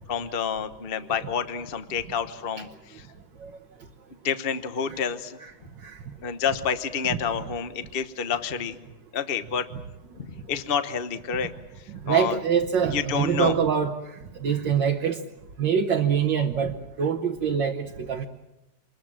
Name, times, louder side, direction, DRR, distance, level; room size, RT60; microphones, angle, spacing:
voice 1, 0.1-2.7 2.9-3.1 4.2-5.4 6.2-8.8 9.1-9.7 10.2-11.5 12.1-12.4 12.9-13.5, left 7 dB, 35° left, 10 dB, 1.1 m, -28 dB
voice 2, 11.9-15.2 15.6-18.3, right 7 dB, 70° right, 2 dB, 1.9 m, -25 dB
27.0 x 21.5 x 7.5 m, 0.94 s
omnidirectional pair, 2.1 m